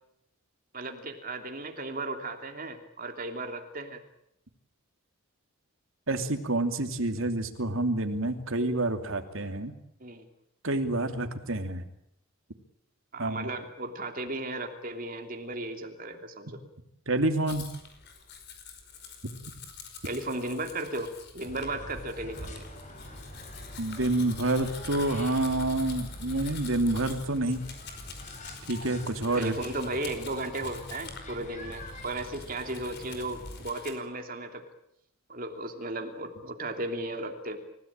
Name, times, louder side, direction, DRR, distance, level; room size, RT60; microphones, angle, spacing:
voice 1, 0.7-4.0 10.0-10.2 13.1-16.6 20.0-22.7 29.3-34.7 35.3-37.6, right 2 dB, 40° right, 5 dB, 3.0 m, -35 dB
voice 2, 6.1-9.7 10.6-11.8 13.2-13.5 17.1-17.6 23.8-27.6 28.7-29.5, right 2 dB, 65° right, 6 dB, 2.7 m, -28 dB
Domestic sounds home sounds, 17.5-34.0, left 5 dB, 50° left, 5.1 m, -47 dB
sound 1, 21.4-33.6, left 1 dB, 35° left, 5.6 m, -44 dB
29.5 x 17.0 x 8.9 m, 0.79 s
head